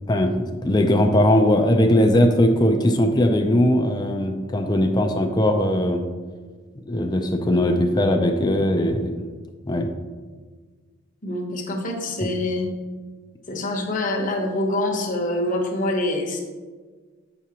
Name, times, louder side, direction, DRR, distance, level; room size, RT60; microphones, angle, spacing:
voice 1, 0.1-6.0 6.8-9.1 9.7-9.9 12.2-12.3, left 1 dB, 20° left, 5 dB, 0.5 m, -19 dB
voice 2, 11.2-12.7 13.5-16.4, left 1 dB, 40° left, 1 dB, 0.9 m, -25 dB
7.9 x 6.1 x 2.9 m, 1.4 s
head